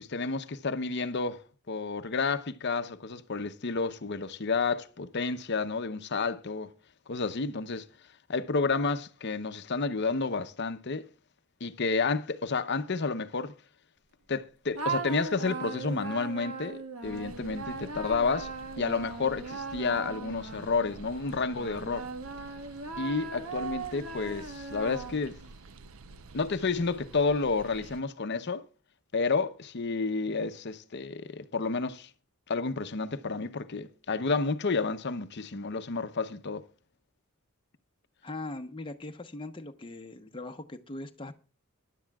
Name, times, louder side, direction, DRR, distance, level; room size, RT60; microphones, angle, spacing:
voice 1, 0.0-1.4 1.7-6.7 7.1-7.8 8.3-11.1 11.6-13.5 14.3-22.1 23.0-25.4 26.3-28.6 29.1-32.1 32.5-36.6, left 4 dB, 50° left, 0.8 m, -30 dB
sound 1, 14.7-21.0 21.6-25.5, right 4 dB, 90° right, 1.5 m, -38 dB
sound 2, 17.0-28.0, right 3 dB, 70° right, 0.7 m, -49 dB
voice 2, 38.2-41.3, left 2 dB, 25° left, 0.9 m, -40 dB
22.5 x 11.0 x 2.3 m
head